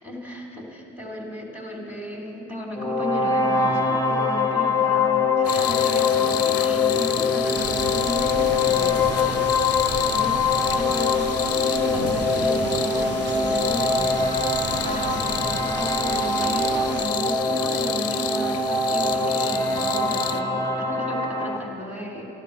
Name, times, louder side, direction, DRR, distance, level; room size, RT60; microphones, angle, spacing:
voice 1, 0.0-14.6 14.8-22.3, left 1 dB, 5° right, -1 dB, 3.1 m, -34 dB
sound 1, 2.8-21.6, left 3 dB, 10° left, 0.9 m, -23 dB
sound 2, 5.4-20.4, left 9 dB, 50° left, 0.6 m, -31 dB
sound 3, 7.5-17.1, right 4 dB, 35° right, 0.8 m, -35 dB
12.5 x 12.5 x 6.6 m, 2.8 s
cardioid pair, 90°, 30 cm